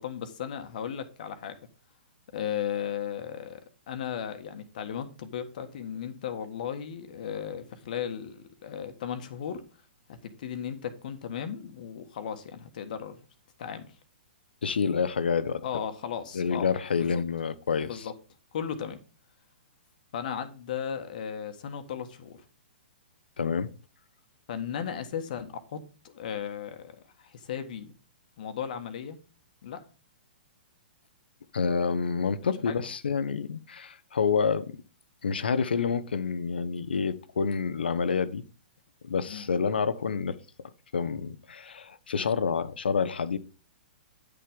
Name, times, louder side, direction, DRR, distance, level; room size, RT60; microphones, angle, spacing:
voice 1, 0.0-1.6 2.3-9.6 10.1-13.2 13.6-14.0 15.6-16.7 17.0-17.2 17.9-18.1 18.5-19.0 20.1-22.4 24.5-27.9 28.4-29.2 29.6-29.8 32.6-32.8 39.3-39.5, left 8 dB, 50° left, 1.4 m, -36 dB
voice 2, 14.6-15.6 16.3-18.0 23.4-23.7 31.5-34.8 35.2-38.4 39.0-40.4 40.9-43.4, left 5 dB, 65° left, 0.9 m, -28 dB
10.0 x 6.8 x 3.6 m
figure-of-eight pair, 115°, 6 cm